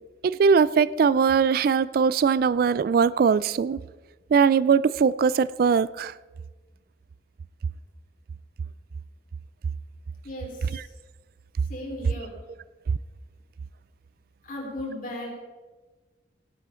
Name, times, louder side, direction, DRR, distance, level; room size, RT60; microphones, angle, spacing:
voice 1, 0.2-3.8 4.3-6.1 10.7-10.8, right 6 dB, 55° right, 19 dB, 0.3 m, -21 dB
voice 2, 10.2-10.8 11.7-12.3 14.4-15.3, left 1 dB, 50° left, -2 dB, 4.0 m, -36 dB
18.0 x 10.5 x 3.7 m, 1.3 s
head